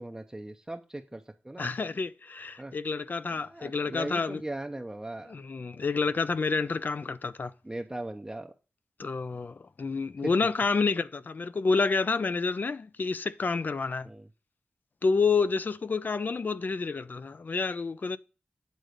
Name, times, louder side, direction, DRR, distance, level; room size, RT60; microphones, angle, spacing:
voice 1, 0.0-1.7 2.6-2.7 3.4-5.3 7.6-8.5 14.0-14.3, right 1 dB, 15° right, 0.6 m, -39 dB
voice 2, 1.6-4.4 5.3-7.5 9.0-14.1 15.0-18.2, left 4 dB, 50° left, 0.4 m, -29 dB
8.2 x 3.8 x 6.4 m
wide cardioid pair, 75°, 4 cm